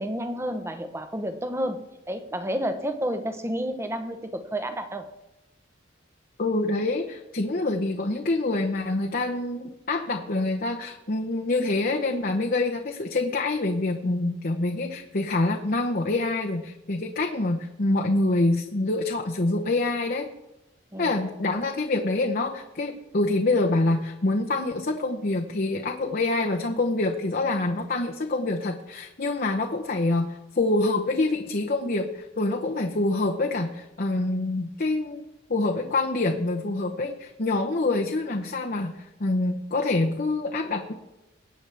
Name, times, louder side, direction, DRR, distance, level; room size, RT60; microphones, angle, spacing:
voice 1, 0.0-5.1 20.9-21.1, equal, 15° right, 8 dB, 0.9 m, -30 dB
voice 2, 6.4-20.3 21.0-35.2 35.5-40.9, left 2 dB, 50° left, 2 dB, 0.9 m, -26 dB
23.0 x 8.9 x 3.4 m, 0.97 s
head